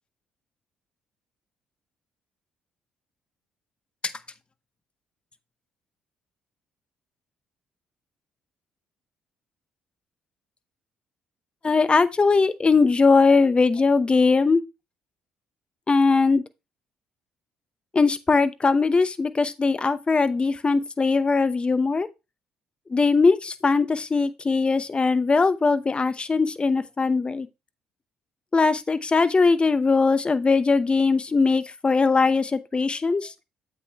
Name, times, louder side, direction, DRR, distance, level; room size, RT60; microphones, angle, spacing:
voice 1, 11.6-14.6 15.9-16.4 17.9-22.1 22.9-27.5 28.5-33.3, left 4 dB, 30° left, 0.8 m, -20 dB
9.0 x 8.1 x 2.3 m
hypercardioid pair, 50°, 4 cm